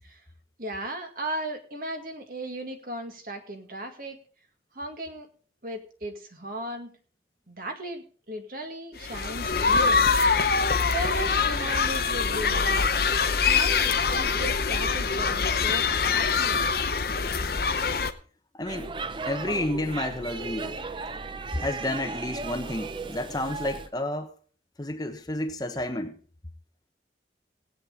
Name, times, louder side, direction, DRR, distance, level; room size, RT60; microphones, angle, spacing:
voice 1, 0.6-4.2 4.7-5.3 5.6-6.9 7.5-10.1 10.9-12.9 13.5-16.6, right 1 dB, 50° right, 2.0 m, -36 dB
sound 1, 9.0-18.1, left 5 dB, 55° left, 0.8 m, -24 dB
voice 2, 18.5-18.9 19.3-20.8 21.5-24.3 24.8-26.2, left 1 dB, 20° left, 1.0 m, -30 dB
Speech / Shout / Subway metro underground, 18.6-23.9, right 3 dB, 25° right, 0.5 m, -36 dB
17.5 x 8.8 x 3.8 m
head